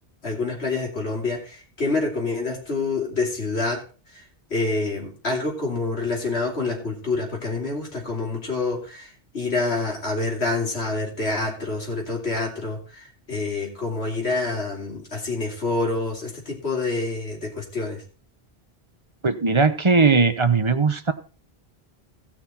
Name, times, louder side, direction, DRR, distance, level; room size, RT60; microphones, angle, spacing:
voice 1, 0.2-3.8 4.1-4.2 4.5-18.0, left 3 dB, 85° left, 0 dB, 3.3 m, -27 dB
voice 2, 19.2-21.1, right 4 dB, 30° right, 10 dB, 1.0 m, -19 dB
17.0 x 6.0 x 4.3 m, 0.34 s
omnidirectional pair, 1.1 m